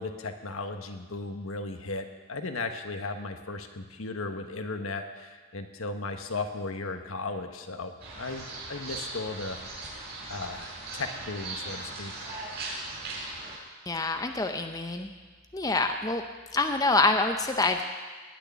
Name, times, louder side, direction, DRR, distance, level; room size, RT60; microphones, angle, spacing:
voice 1, 0.0-10.0 10.3-12.3, left 3 dB, 75° left, 6 dB, 1.3 m, -36 dB
sound 1, 8.0-13.6, right 2 dB, 45° right, 6.4 m, -39 dB
voice 2, 13.9-15.1 15.5-16.2 16.5-17.8, left 3 dB, 15° left, 6 dB, 0.7 m, -26 dB
19.5 x 6.7 x 9.4 m, 1.4 s
head